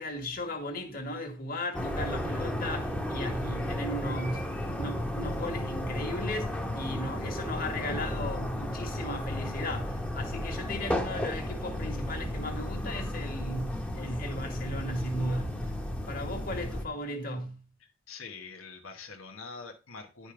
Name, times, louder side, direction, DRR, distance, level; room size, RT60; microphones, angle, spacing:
voice 1, 0.0-15.6 16.1-17.6, left 1 dB, 45° left, 2.0 m, -36 dB
sound 1, 1.7-16.8, left 1 dB, 5° left, 1.1 m, -33 dB
voice 2, 17.8-20.3, left 4 dB, 80° left, 1.2 m, -45 dB
10.0 x 5.4 x 4.9 m
head